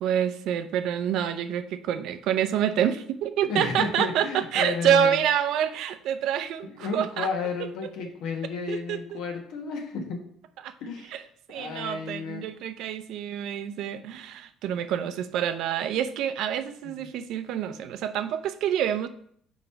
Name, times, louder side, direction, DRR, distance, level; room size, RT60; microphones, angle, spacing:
voice 1, 0.0-7.3 8.7-9.2 10.6-10.7 11.1-11.2 11.5-19.1, right 9 dB, 65° right, 10 dB, 0.5 m, -27 dB
voice 2, 3.4-5.2 6.6-10.2 10.8-11.2 11.5-12.5 16.8-17.0, left 5 dB, 70° left, 3 dB, 1.3 m, -32 dB
4.9 x 4.0 x 5.5 m, 0.63 s
cardioid pair, 145°, 0 cm